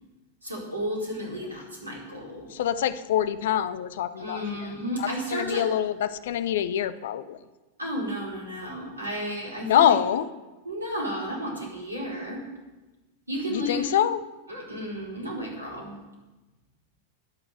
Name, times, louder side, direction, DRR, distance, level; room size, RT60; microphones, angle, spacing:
voice 1, 0.4-2.5 4.2-5.7 7.8-9.9 10.6-12.4 13.3-13.9 14.5-16.0, equal, 80° right, -2 dB, 4.5 m, -33 dB
voice 2, 2.5-4.7 5.0-7.4 9.6-10.3 13.5-14.2, left 10 dB, 55° left, 15 dB, 0.7 m, -25 dB
20.5 x 7.1 x 6.9 m, 1.1 s
figure-of-eight pair, 90°, 0 cm